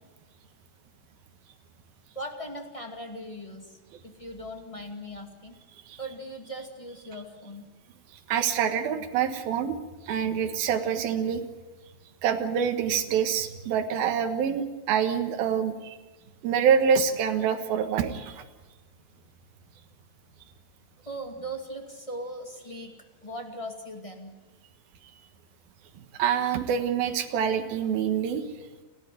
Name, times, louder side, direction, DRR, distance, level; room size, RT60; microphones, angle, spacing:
voice 1, 2.1-5.6 6.0-7.7 21.0-22.9 23.2-24.3, right 1 dB, 10° left, 3 dB, 1.6 m, -39 dB
voice 2, 8.3-9.8 10.0-11.4 12.2-16.0 16.4-18.4 25.9-28.5, right 7 dB, 75° right, 6 dB, 3.3 m, -26 dB
30.0 x 13.0 x 9.3 m, 1.2 s
omnidirectional pair, 4.3 m